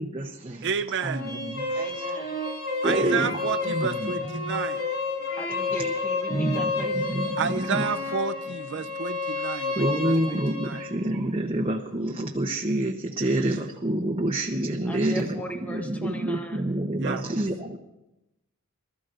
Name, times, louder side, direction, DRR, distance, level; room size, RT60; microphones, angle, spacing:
voice 1, 0.0-0.7 1.0-1.9 2.8-4.6 5.7-5.8 6.3-6.6 7.0-7.9 9.7-15.4 15.7-17.8, right 1 dB, 25° right, -1 dB, 0.9 m, -28 dB
voice 2, 0.6-1.3 2.8-4.8 7.4-10.4 10.6-10.8 17.0-17.2, right 6 dB, 55° right, 11 dB, 0.6 m, -30 dB
sound 1, 0.9-10.9, left 3 dB, 75° left, 2.9 m, -30 dB
voice 3, 1.8-2.4 5.4-7.1 14.9-16.7, equal, 5° left, 4 dB, 1.0 m, -38 dB
25.0 x 13.5 x 2.6 m, 0.92 s
head